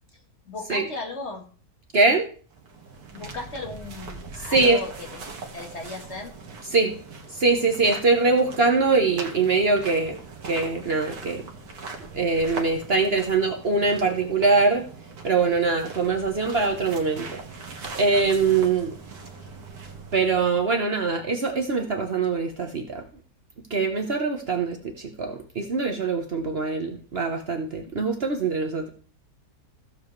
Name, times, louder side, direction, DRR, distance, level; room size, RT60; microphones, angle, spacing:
voice 1, 0.5-1.4 3.1-5.2 5.5-6.3, left 2 dB, 45° left, 2 dB, 1.8 m, -36 dB
voice 2, 1.9-2.3 4.5-4.8 6.7-7.0 7.3-10.2 10.4-11.5 12.1-14.9 15.2-17.4 17.8-18.9 20.1-23.0 23.7-28.9, right 4 dB, 45° right, 3 dB, 1.2 m, -23 dB
sound 1, 2.5-20.8, right 4 dB, 75° right, 2.0 m, -41 dB
15.5 x 7.1 x 3.2 m, 0.42 s
omnidirectional pair, 1.6 m